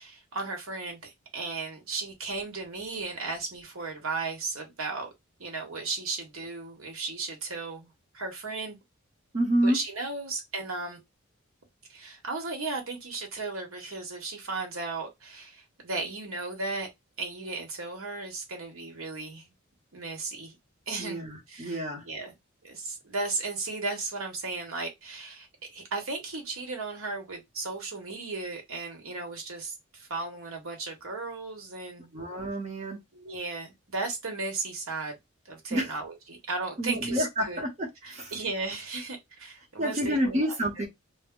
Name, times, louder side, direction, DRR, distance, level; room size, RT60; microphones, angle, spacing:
voice 1, 0.0-5.1 5.4-8.8 9.6-11.0 11.9-16.9 17.2-19.5 19.9-20.6 20.9-21.2 21.5-21.8 22.0-22.4 22.6-32.1 33.1-35.2 35.5-37.6 38.0-40.9, right 3 dB, 90° right, 1.0 m, -35 dB
voice 2, 9.3-9.8 21.0-22.0 32.1-33.0 35.7-35.9 36.8-38.3 39.8-40.9, equal, 35° right, 0.9 m, -28 dB
2.1 x 2.1 x 3.6 m
head